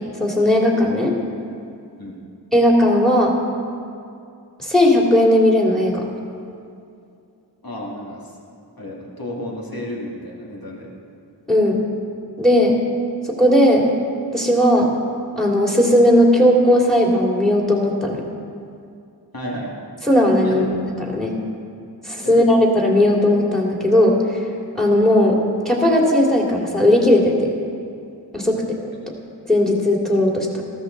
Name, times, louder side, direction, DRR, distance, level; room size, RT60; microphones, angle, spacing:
voice 1, 0.2-1.1 2.5-3.3 4.6-6.0 11.5-11.8 12.4-12.8 13.2-13.9 14.3-14.9 15.4-18.2 20.1-21.4 22.0-24.1 24.7-25.4 25.6-27.5 28.3-28.6 29.5-30.6, left 1 dB, ahead, -2 dB, 2.7 m, -16 dB
voice 2, 7.6-8.4 8.8-10.9 19.3-19.7 20.4-20.7 22.2-22.5 28.9-29.1, left 1 dB, 55° left, -3 dB, 2.5 m, -32 dB
14.5 x 13.5 x 4.0 m, 2.5 s
wide cardioid pair, 45°, 43 cm